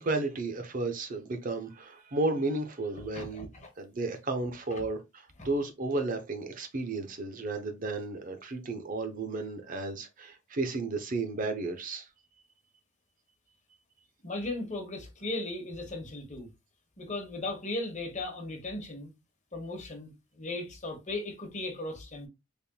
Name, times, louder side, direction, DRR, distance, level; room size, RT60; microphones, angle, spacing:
voice 1, 0.0-3.5 3.8-12.1, right 2 dB, 45° right, 0.7 m, -33 dB
voice 2, 3.1-3.7 4.8-4.9 5.4-5.5 14.2-16.5 17.0-19.1 19.5-22.3, left 2 dB, 35° left, 1.1 m, -37 dB
4.2 x 3.5 x 2.2 m
head